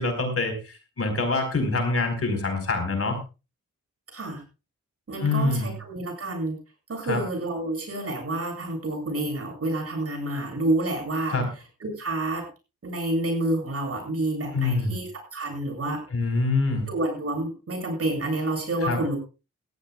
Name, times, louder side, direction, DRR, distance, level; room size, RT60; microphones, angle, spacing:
voice 1, 0.0-3.2 5.2-5.7 7.0-7.2 11.3-11.5 14.5-15.0 16.1-16.9 18.8-19.0, left 3 dB, 50° left, 6 dB, 4.6 m, -25 dB
voice 2, 4.1-4.4 5.1-6.5 6.9-11.4 11.8-12.5 12.8-16.0 16.9-19.2, right 1 dB, 50° right, 3 dB, 7.9 m, -29 dB
18.5 x 15.0 x 2.4 m, 0.30 s
cardioid pair, 80°, 30 cm